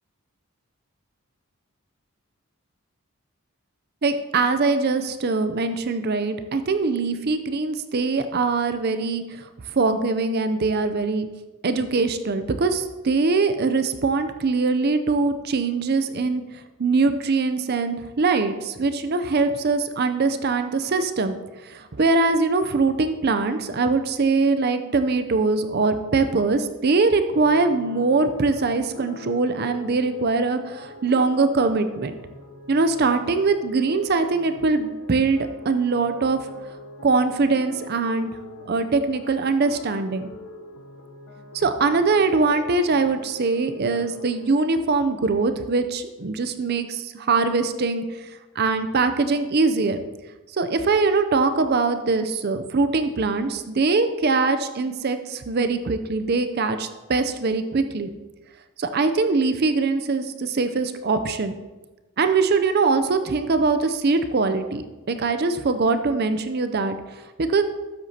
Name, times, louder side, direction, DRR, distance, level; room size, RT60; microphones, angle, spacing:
voice 1, 4.0-11.3 11.6-16.4 16.8-21.4 21.6-32.1 32.7-36.4 37.0-38.3 38.7-40.3 41.5-48.3 48.6-50.0 50.6-58.1 58.8-61.5 62.2-67.0 67.4-67.6, right 3 dB, 45° right, 9 dB, 0.5 m, -22 dB
sound 1, 27.3-44.5, left 1 dB, 90° left, 1.0 m, -43 dB
13.0 x 7.9 x 2.8 m, 1.2 s
head